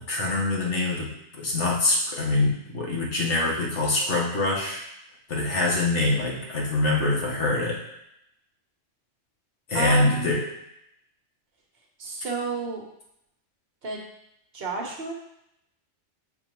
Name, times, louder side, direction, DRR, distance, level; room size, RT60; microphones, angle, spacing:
voice 1, 0.1-1.1 1.4-4.8 5.3-7.8 9.7-10.4, left 2 dB, 80° left, -3 dB, 1.7 m, -24 dB
voice 2, 9.7-10.3 12.0-12.8 13.8-14.0 14.5-15.1, right 4 dB, 55° right, 0 dB, 1.1 m, -30 dB
7.1 x 4.5 x 3.0 m, 0.80 s
omnidirectional pair, 1.2 m